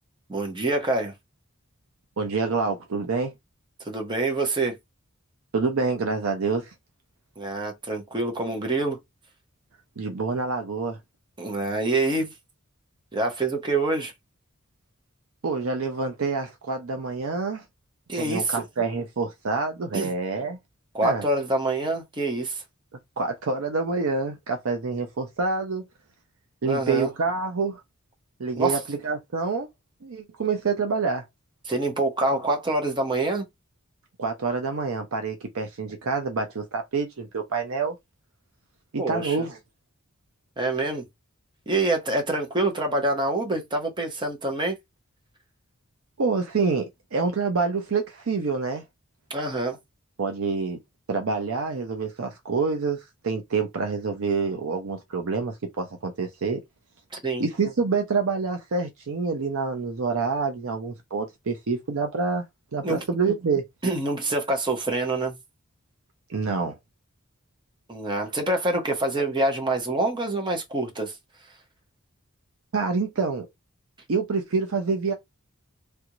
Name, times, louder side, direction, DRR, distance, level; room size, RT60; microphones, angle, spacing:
voice 1, 0.3-1.1 3.9-4.8 7.4-9.0 11.4-12.3 13.1-14.1 18.1-18.6 19.9-20.1 20.9-22.6 26.6-27.1 28.6-28.8 31.7-33.5 39.0-39.4 40.6-41.0 41.7-44.8 49.3-49.8 57.2-57.5 62.8-63.0 63.8-65.4 67.9-71.1, right 2 dB, 20° right, 0.9 m, -26 dB
voice 2, 2.2-3.3 5.5-6.7 10.0-11.0 15.4-17.6 18.2-20.6 21.0-21.2 23.2-25.8 26.6-27.8 28.4-29.7 30.0-31.2 34.2-38.0 38.9-39.6 46.2-48.8 50.2-50.8 51.1-56.6 57.4-62.4 62.7-63.6 66.3-66.8 72.7-73.5 74.1-75.1, right 4 dB, 70° right, 0.6 m, -27 dB
3.3 x 2.5 x 3.0 m
head